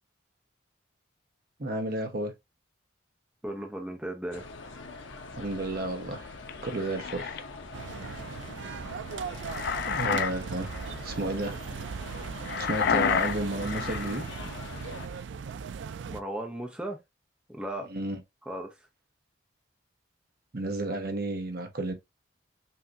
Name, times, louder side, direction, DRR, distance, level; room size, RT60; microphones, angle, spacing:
voice 1, 1.6-2.3 5.4-6.3 6.6-7.4 9.9-10.7 11.0-11.7 12.6-14.3 17.9-18.2 20.5-21.9, right 2 dB, 50° right, 1.1 m, -32 dB
voice 2, 3.4-4.5 16.1-17.0 17.5-17.9 18.5-18.7, right 1 dB, 5° right, 0.8 m, -36 dB
sound 1, 4.3-15.1, left 3 dB, 80° left, 1.0 m, -43 dB
sound 2, 6.5-7.4 9.2-10.4 10.7-11.0 12.5-14.2, left 7 dB, 55° left, 0.4 m, -29 dB
sound 3, 7.7-16.2, right 6 dB, 70° right, 0.4 m, -39 dB
5.8 x 2.9 x 2.6 m
head